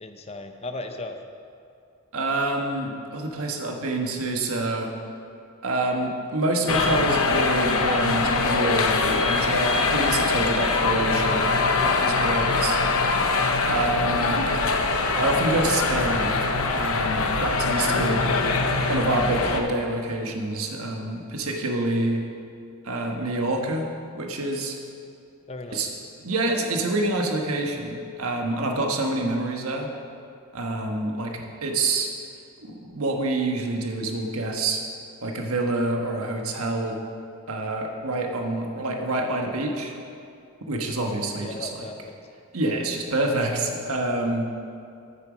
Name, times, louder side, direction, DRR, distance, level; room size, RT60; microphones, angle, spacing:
voice 1, 0.0-1.2 25.5-25.8 41.4-42.2, left 2 dB, 30° left, 6 dB, 0.7 m, -36 dB
voice 2, 2.1-4.9 5.6-12.8 13.6-14.4 15.1-16.4 16.7-18.3 18.9-22.2 22.8-23.9 24.1-24.8 25.7-25.9 26.2-29.9 30.5-32.1 32.6-34.8 35.2-37.0 37.5-40.0 40.7-41.9 42.5-44.5, right 2 dB, 90° right, 2 dB, 1.3 m, -27 dB
sound 1, 6.7-19.6, left 3 dB, 85° left, 0.9 m, -23 dB
9.1 x 8.9 x 6.1 m, 2.5 s
head